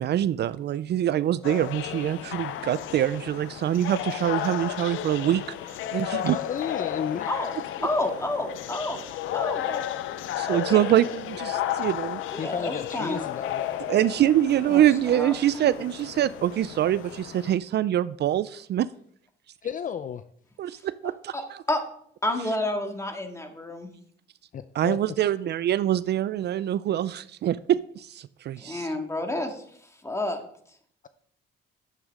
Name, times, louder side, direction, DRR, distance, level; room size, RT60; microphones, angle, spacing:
voice 1, 0.0-5.4 5.7-6.4 10.4-12.2 13.9-18.9 20.6-21.3 24.8-28.9, right 11 dB, 60° right, 17 dB, 0.4 m, -24 dB
sound 1, 1.4-17.6, left 11 dB, 80° left, 0.6 m, -33 dB
voice 2, 6.3-7.3 12.4-13.9 19.6-20.2 24.5-25.2, left 8 dB, 40° left, 12 dB, 0.5 m, -33 dB
voice 3, 7.8-9.0 9.3-10.0 10.5-10.8 12.3-13.2 14.7-15.8 21.3-21.4 21.7-21.8 22.2-23.9 28.6-29.6 30.0-30.4, left 1 dB, 15° left, 4 dB, 2.0 m, -30 dB
11.0 x 8.1 x 3.7 m, 0.63 s
cardioid pair, 90°, 20 cm